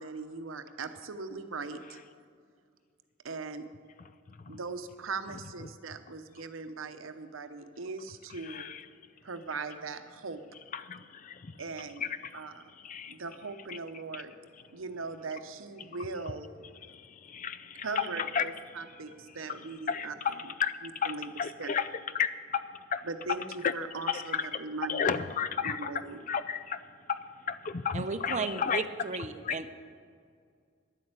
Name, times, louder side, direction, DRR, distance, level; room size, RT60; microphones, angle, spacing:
voice 1, 0.0-2.0 3.2-3.7 4.5-8.7 9.2-10.4 11.6-12.1 12.3-12.6 13.1-14.3 14.7-16.5 17.8-20.5 20.8-21.3 21.6-21.7 23.0-25.2 25.6-26.2, right 4 dB, 90° right, 10 dB, 0.8 m, -39 dB
voice 2, 8.4-8.8 10.7-11.5 12.0-12.1 12.3-12.4 12.8-13.1 13.7-13.8 14.1-14.2 16.9-18.1 18.3-18.5 19.9-20.7 21.0-21.9 22.1-22.6 22.9-23.0 23.6-23.7 24.1-24.6 24.9-25.9 26.3-26.8 27.1-27.2 27.5-28.8 29.4-29.7, left 7 dB, 40° left, 13 dB, 0.4 m, -32 dB
voice 3, 27.9-29.7, right 4 dB, 35° right, 10 dB, 0.6 m, -34 dB
11.0 x 8.6 x 8.1 m, 2.1 s
head